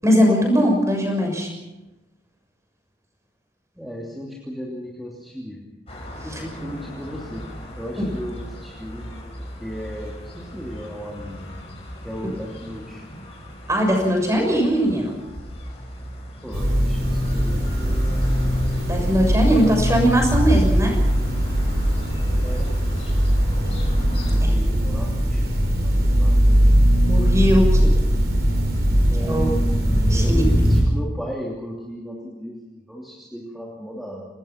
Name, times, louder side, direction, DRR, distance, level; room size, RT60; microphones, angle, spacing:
voice 1, 0.0-1.5 6.3-6.4 8.0-8.1 13.7-15.1 18.9-21.0 24.4-24.5 27.0-27.9 29.2-29.5 30.1-30.5, equal, 15° right, 1 dB, 6.7 m, -20 dB
voice 2, 3.7-5.6 6.2-7.5 7.8-9.1 9.6-11.5 12.0-13.0 16.4-18.0 22.4-23.2 24.2-26.7 29.1-29.5 30.1-34.3, equal, ahead, -3 dB, 2.9 m, -36 dB
sound 1, 5.9-24.4, equal, 35° left, 5.9 m, -37 dB
sound 2, 16.5-30.8, equal, 60° right, 6.9 m, -20 dB
29.0 x 19.5 x 6.0 m, 1.0 s
head